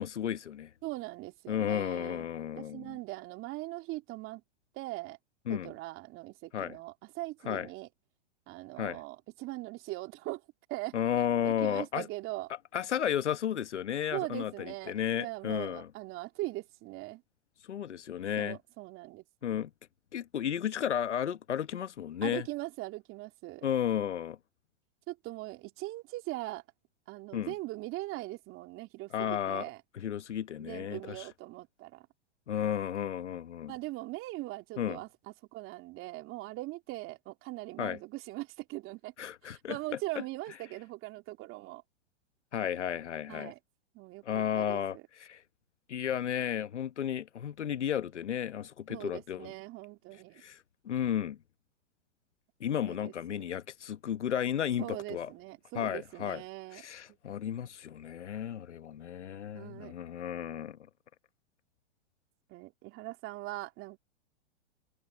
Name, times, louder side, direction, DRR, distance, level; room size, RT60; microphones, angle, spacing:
voice 1, 0.0-0.7 1.5-3.0 5.5-5.7 6.5-6.8 7.4-7.7 8.8-9.0 10.9-12.1 12.7-15.9 17.7-18.6 19.4-19.7 20.1-22.4 23.6-24.4 27.3-27.5 29.1-29.7 29.9-31.3 32.5-33.7 34.8-35.0 37.8-38.0 39.2-39.8 42.5-43.5 44.2-45.4 45.9-49.5 50.4-51.4 52.6-55.3 55.7-56.4 56.7-60.8, left 9 dB, 85° left, 1.3 m, -33 dB
voice 2, 0.8-2.3 2.6-4.4 4.7-5.2 5.5-7.9 8.5-10.4 10.7-11.0 11.4-12.5 14.1-17.2 18.4-19.2 22.2-23.7 25.1-26.6 27.1-29.8 30.6-32.1 33.7-39.1 39.4-41.8 43.3-43.6 43.9-45.0 48.9-50.4 52.9-53.4 54.8-56.8 59.5-60.0 62.5-64.0, right 19 dB, 40° right, 3.2 m, -41 dB
hypercardioid pair, 120°, 34 cm